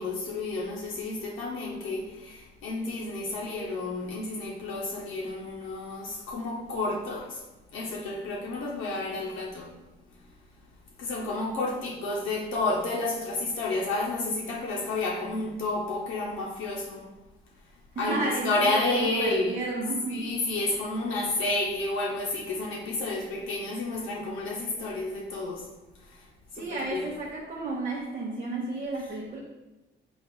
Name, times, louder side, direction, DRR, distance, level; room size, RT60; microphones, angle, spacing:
voice 1, 0.0-7.4 7.7-9.7 11.0-17.0 18.0-19.6 20.1-25.6 26.5-27.1, left 2 dB, 85° left, -3 dB, 0.7 m, -30 dB
voice 2, 18.0-20.3 26.6-29.4, right 2 dB, 35° right, -4 dB, 0.8 m, -32 dB
3.5 x 2.4 x 4.2 m, 1.0 s
cardioid pair, 90°, 20 cm